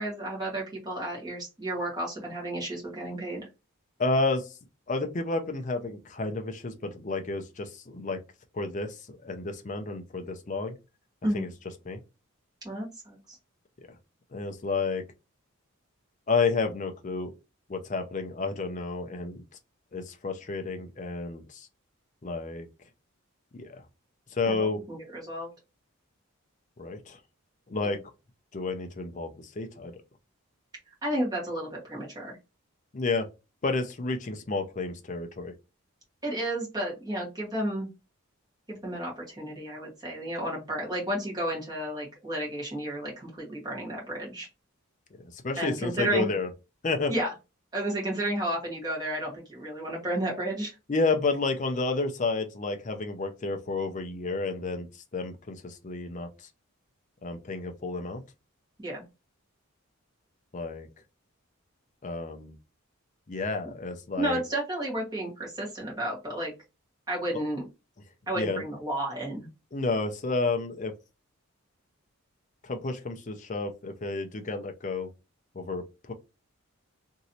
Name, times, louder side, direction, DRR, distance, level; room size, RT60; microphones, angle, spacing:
voice 1, 0.0-3.5 11.2-11.5 12.6-13.4 24.4-25.5 27.8-27.9 31.0-32.3 36.2-37.9 38.7-44.5 45.6-46.3 47.1-47.3 47.7-50.7 58.8-59.0 64.2-66.5 67.1-67.6 68.3-69.5, right 1 dB, 20° right, 1.4 m, -32 dB
voice 2, 4.0-4.4 4.9-8.2 8.5-10.7 11.3-11.5 11.9-12.0 14.3-15.0 16.3-17.3 17.7-19.4 19.9-21.7 22.2-22.7 23.5-23.8 24.3-24.8 26.8-27.2 27.7-28.0 28.5-29.9 32.9-33.3 33.6-35.5 45.3-46.5 46.8-47.1 50.9-54.9 55.1-56.3 57.2-58.2 60.5-60.9 62.0-62.5 63.3-64.4 68.4-68.6 69.7-70.9 72.6-75.1 75.6-76.1, left 3 dB, 35° left, 0.5 m, -30 dB
3.0 x 2.7 x 2.7 m
head